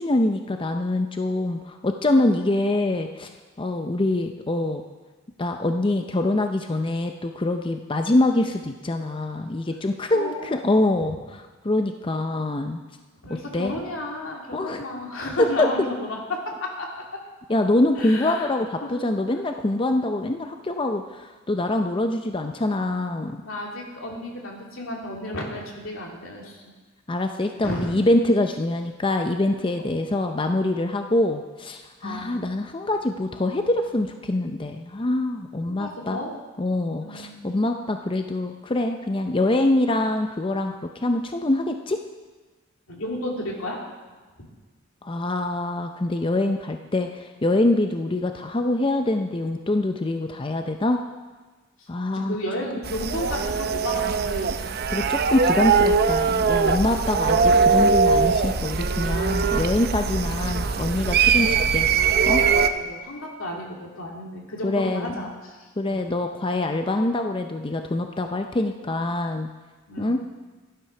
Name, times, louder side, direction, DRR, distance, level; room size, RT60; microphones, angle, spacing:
voice 1, 0.0-3.3 3.6-4.8 5.4-12.8 13.5-13.7 14.5-14.8 15.4-15.7 17.5-23.4 27.1-36.2 36.6-42.0 45.0-51.0 51.9-52.4 54.9-61.9 62.3-62.4 64.6-65.1 65.8-69.5 70.0-70.2, left 2 dB, 25° left, 5 dB, 0.5 m, -24 dB
voice 2, 10.1-10.5 13.2-17.0 18.0-18.5 18.8-19.0 19.3-19.4 23.4-26.7 27.6-28.0 32.0-32.3 35.7-36.3 37.0-37.6 42.9-43.8 44.4-44.5 52.1-54.5 57.2-57.4 60.5-60.7 62.7-66.0 69.9-70.2, left 1 dB, 80° left, -1 dB, 2.6 m, -33 dB
sound 1, 52.8-62.7, right 5 dB, 50° right, 0.6 m, -21 dB
12.5 x 11.0 x 5.8 m, 1.3 s
head